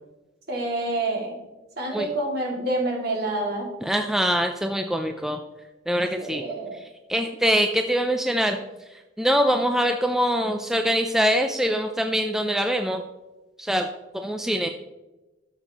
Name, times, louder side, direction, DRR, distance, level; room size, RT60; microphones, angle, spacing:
voice 1, 0.5-1.4 1.8-3.7 6.2-6.8, right 2 dB, 50° right, -2 dB, 2.3 m, -27 dB
voice 2, 3.8-5.4 5.9-6.4 6.7-8.6 8.9-13.0 13.6-13.9 14.1-14.7, equal, ahead, 5 dB, 0.3 m, -24 dB
13.0 x 7.0 x 2.9 m, 1.1 s
head